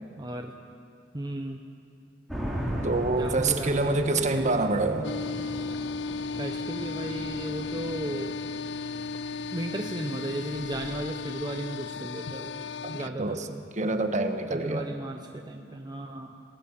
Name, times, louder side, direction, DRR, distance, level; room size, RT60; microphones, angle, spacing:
voice 1, 0.2-0.5 1.1-1.6 3.1-4.6 6.4-8.4 9.5-12.6 12.9-13.6 14.5-16.4, right 1 dB, 25° right, 3 dB, 1.0 m, -35 dB
sound 1, 2.3-11.0, equal, ahead, 4.3 m, -38 dB
voice 2, 2.8-5.1 12.8-13.5 13.8-14.8, right 2 dB, 40° right, 7 dB, 1.5 m, -27 dB
sound 2, 5.0-13.1, left 4 dB, 70° left, 0.5 m, -35 dB
27.5 x 19.0 x 7.4 m, 2.6 s
head